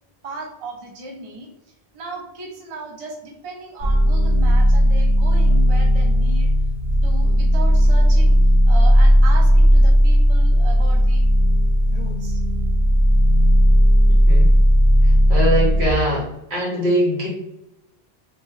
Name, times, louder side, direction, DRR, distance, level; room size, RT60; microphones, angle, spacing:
voice 1, 0.2-1.5 1.9-6.5 7.0-8.4 8.7-11.3 11.9-12.4, right 2 dB, 40° right, 1 dB, 0.6 m, -35 dB
sound 1, 3.8-15.9, equal, 70° right, 1.3 m, -15 dB
voice 2, 15.0-17.3, equal, 90° right, -5 dB, 1.5 m, -22 dB
2.9 x 2.2 x 3.0 m, 0.87 s
omnidirectional pair, 1.1 m